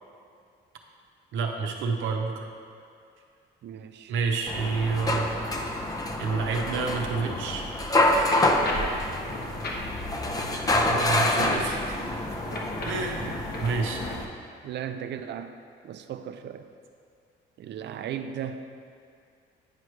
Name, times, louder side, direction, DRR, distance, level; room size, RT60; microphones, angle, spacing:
voice 1, 1.3-2.5 4.1-5.3 6.2-7.7 10.7-12.0 12.9-13.3 13.6-14.0, right 4 dB, 80° right, 2 dB, 0.8 m, -29 dB
voice 2, 3.6-4.1 8.7-9.2 11.3-11.6 12.9-13.4 14.6-15.6 15.8-16.7 17.6-18.6, right 9 dB, 60° right, 9 dB, 0.4 m, -37 dB
sound 1, 4.5-14.3, left 1 dB, 20° left, 0.6 m, -27 dB
sound 2, 7.9-14.2, left 1 dB, 55° left, 1.0 m, -37 dB
9.1 x 4.6 x 3.2 m, 2.3 s
cardioid pair, 90°, 20 cm